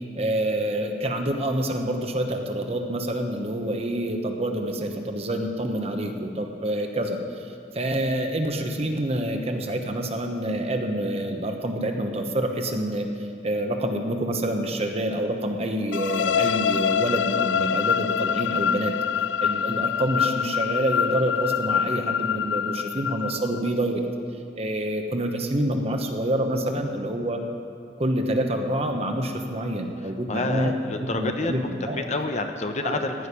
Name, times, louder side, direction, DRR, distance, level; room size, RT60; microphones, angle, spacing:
voice 1, 0.2-18.9 19.4-24.0 24.6-27.4 28.0-30.7 31.1-32.1 32.8-33.0, right 1 dB, 35° right, 4 dB, 1.1 m, -27 dB
sound 1, 15.9-23.7, left 8 dB, 80° left, 0.4 m, -25 dB
voice 2, 30.3-33.3, left 2 dB, 40° left, 6 dB, 0.8 m, -29 dB
15.0 x 6.5 x 9.9 m, 2.4 s
head